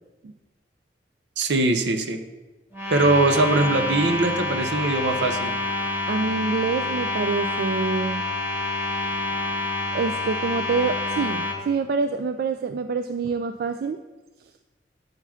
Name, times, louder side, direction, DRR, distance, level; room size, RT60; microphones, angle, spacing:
voice 1, 1.4-2.2 2.9-5.5, right 2 dB, 75° right, 8 dB, 0.7 m, -21 dB
sound 1, 2.7-11.6, left 2 dB, 15° right, 1.8 m, -27 dB
voice 2, 6.1-8.3 9.9-14.0, right 4 dB, 60° right, 9 dB, 0.3 m, -26 dB
7.8 x 4.8 x 5.7 m, 1.1 s
head